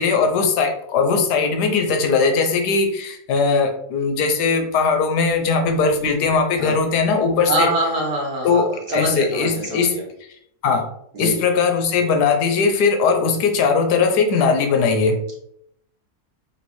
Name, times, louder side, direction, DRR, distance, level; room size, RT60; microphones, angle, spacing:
voice 1, 0.0-7.7 8.4-10.0 10.6-10.9 11.2-15.2, left 5 dB, 85° left, 4 dB, 1.2 m, -19 dB
voice 2, 7.5-10.0 11.1-11.4, right 1 dB, 65° right, -2 dB, 1.5 m, -24 dB
3.2 x 3.0 x 3.0 m, 0.72 s
omnidirectional pair, 1.7 m